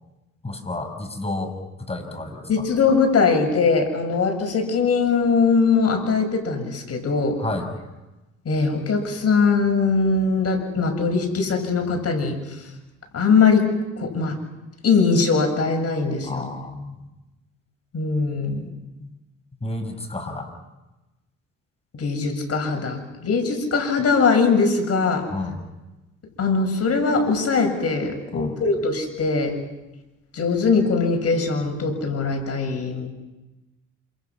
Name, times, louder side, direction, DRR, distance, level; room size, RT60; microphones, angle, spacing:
voice 1, 0.4-1.5 1.9-2.6 7.4-7.7 16.3-17.0 19.0-19.1 19.6-20.5 25.3-25.6 28.3-28.6, left 2 dB, 20° left, 5 dB, 6.2 m, -31 dB
voice 2, 2.5-7.4 8.5-12.7 13.1-13.6 14.0-14.4 14.8-16.5 17.9-18.7 22.0-25.3 26.4-29.6 30.3-33.1, left 4 dB, 55° left, 4 dB, 7.0 m, -21 dB
28.5 x 27.0 x 6.1 m, 1.0 s
cardioid pair, 90°, 30 cm